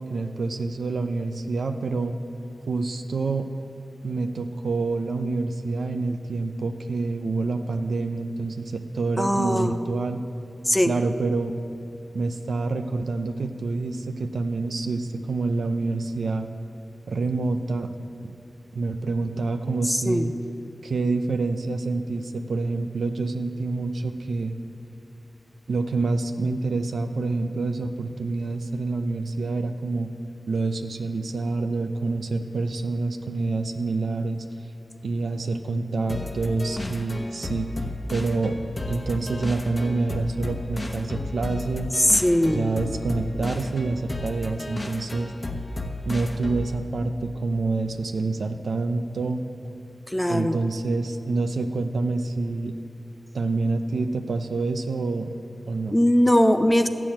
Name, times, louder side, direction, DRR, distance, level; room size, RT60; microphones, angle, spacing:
voice 1, 0.0-2.2 2.7-3.5 4.0-10.2 10.8-11.5 12.1-16.5 17.1-17.9 18.7-20.3 20.8-24.5 25.7-30.1 30.5-34.4 35.0-37.7 38.1-38.6 38.9-41.9 42.5-45.3 46.0-49.4 50.3-52.7 53.3-55.3 55.7-56.0, right 3 dB, 85° right, 6 dB, 0.7 m, -27 dB
voice 2, 9.2-9.7 10.7-10.9 20.1-20.3 41.9-42.7 50.1-50.6 55.9-56.9, equal, 10° left, 8 dB, 0.7 m, -20 dB
sound 1, 36.1-46.8, left 2 dB, 35° left, 1.0 m, -33 dB
13.5 x 6.1 x 8.7 m, 2.7 s
wide cardioid pair, 70°, 0 cm